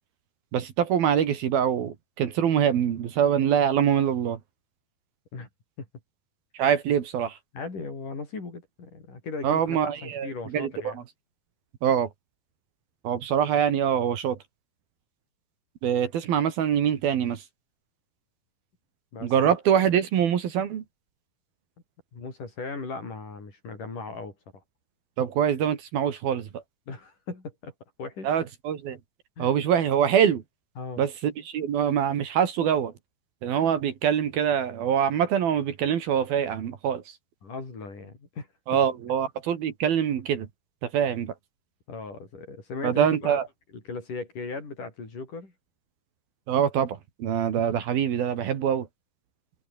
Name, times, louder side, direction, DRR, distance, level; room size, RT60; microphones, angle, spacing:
voice 1, 0.5-4.4 6.6-7.3 9.4-10.9 11.8-12.1 13.1-14.4 15.8-17.4 19.2-20.8 25.2-26.5 28.2-29.0 29.4-30.4 31.0-32.9 33.4-37.0 38.7-40.5 40.9-41.3 42.8-43.4 46.5-48.9, right 8 dB, 65° right, 3.8 m, -24 dB
voice 2, 7.5-11.1 19.1-19.5 22.1-24.6 26.9-27.7 28.0-28.3 29.4-29.6 30.8-31.0 37.4-38.5 41.9-43.4 43.7-45.5, left 4 dB, 50° left, 7.9 m, -37 dB
omnidirectional pair, 4.8 m